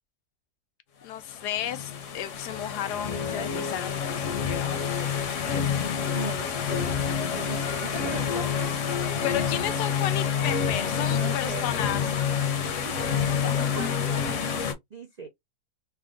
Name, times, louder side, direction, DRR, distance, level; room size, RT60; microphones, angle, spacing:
voice 1, 1.0-4.8 9.2-12.1, left 11 dB, 90° left, 1.2 m, -33 dB
sound 1, 1.3-14.7, left 7 dB, 60° left, 0.9 m, -28 dB
voice 2, 6.1-7.0 7.3-8.7 11.1-11.8 12.6-14.4 14.9-15.3, right 4 dB, 70° right, 0.4 m, -39 dB
3.4 x 2.1 x 3.5 m
omnidirectional pair, 1.7 m